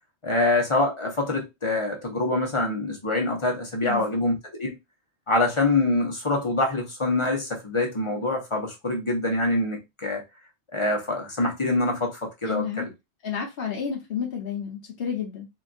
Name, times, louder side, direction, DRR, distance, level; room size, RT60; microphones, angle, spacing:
voice 1, 0.2-4.8 5.3-10.2 10.7-12.9, left 2 dB, 30° left, 0.8 m, -25 dB
voice 2, 3.8-4.2 12.4-12.9 13.2-15.5, left 7 dB, 55° left, 0.9 m, -31 dB
3.7 x 2.5 x 2.5 m
omnidirectional pair, 1.2 m